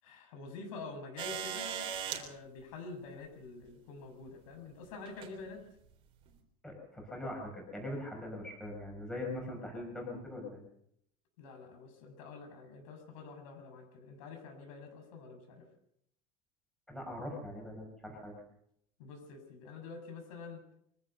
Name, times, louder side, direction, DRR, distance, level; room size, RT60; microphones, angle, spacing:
voice 1, 0.0-5.6 11.4-15.7 19.0-20.6, left 4 dB, 70° left, 4 dB, 7.1 m, -47 dB
sound 1, 1.2-2.2 3.6-3.7 5.0-5.3 6.3-6.4, right 8 dB, 30° right, 3.7 m, -38 dB
voice 2, 6.6-10.6 16.9-18.3, left 1 dB, 5° left, 0 dB, 5.8 m, -41 dB
24.0 x 16.0 x 6.8 m, 0.72 s
cardioid pair, 175°, 18 cm